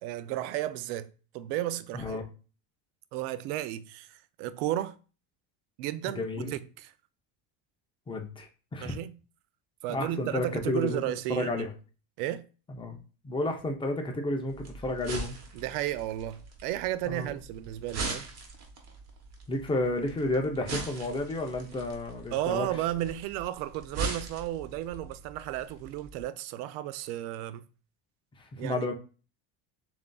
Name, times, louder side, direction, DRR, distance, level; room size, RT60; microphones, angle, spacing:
voice 1, 0.0-2.2 3.1-5.0 5.8-6.2 6.5-6.9 8.8-9.2 9.8-11.7 12.2-12.5 15.5-18.3 22.3-27.7 28.6-28.9, right 13 dB, 80° right, 0.6 m, -33 dB
voice 2, 1.9-2.3 6.2-6.5 8.1-9.0 9.9-11.0 11.3-11.7 12.8-13.0 13.2-15.4 17.1-17.3 19.5-22.7 28.6-28.9, left 2 dB, 10° left, 0.5 m, -31 dB
sound 1, 14.5-26.2, right 3 dB, 35° right, 1.1 m, -41 dB
6.8 x 2.7 x 2.3 m
cardioid pair, 130°, 46 cm